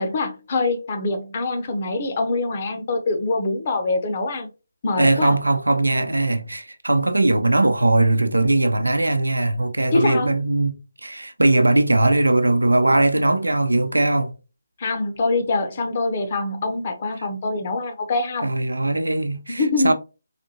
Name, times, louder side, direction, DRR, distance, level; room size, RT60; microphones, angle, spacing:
voice 1, 0.0-4.5 4.8-5.4 9.9-10.3 14.8-18.5 19.5-19.9, left 3 dB, 40° left, 0.9 m, -24 dB
voice 2, 5.0-10.8 11.0-14.3 18.4-19.9, right 2 dB, 85° right, 0.6 m, -19 dB
4.2 x 2.6 x 2.8 m
figure-of-eight pair, 150°, 0 cm